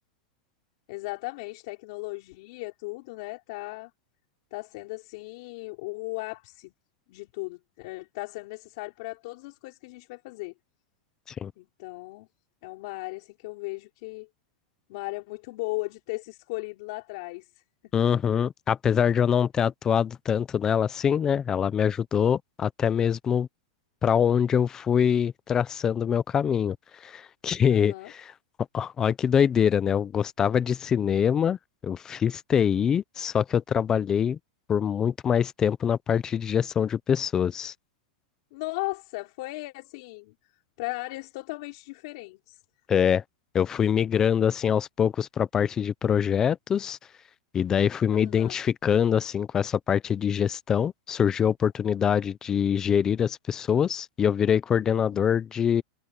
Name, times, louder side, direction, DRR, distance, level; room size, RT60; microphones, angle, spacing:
voice 1, 0.9-3.9 4.5-6.7 7.1-10.5 11.6-12.3 12.6-14.3 14.9-17.6 27.7-28.1 38.5-40.5 40.8-42.6 48.1-48.6 55.1-55.4, left 24 dB, 45° left, 5.1 m, -37 dB
voice 2, 17.9-23.5 24.0-26.8 27.0-28.3 28.7-31.6 31.8-34.4 34.7-37.7 42.9-43.2 43.5-47.0 47.5-55.8, left 8 dB, 15° left, 0.6 m, -24 dB
supercardioid pair, 170°, 4 cm